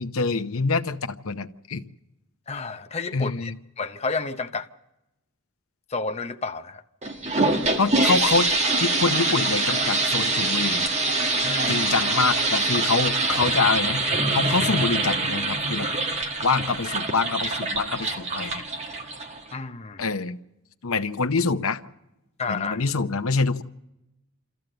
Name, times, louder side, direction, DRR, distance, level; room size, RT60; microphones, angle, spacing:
voice 1, 0.0-1.8 3.1-3.6 7.8-8.5 8.8-10.9 11.7-14.0 14.3-15.9 16.4-18.6 20.0-20.4 20.8-21.8 22.5-23.6, left 4 dB, 85° left, 0.8 m, -25 dB
voice 2, 2.5-4.7 5.9-6.8 11.4-11.8 19.5-20.0 22.4-22.8, left 4 dB, 30° left, 0.8 m, -31 dB
sound 1, 7.0-19.5, right 2 dB, 30° right, 1.6 m, -24 dB
26.0 x 14.5 x 7.8 m
head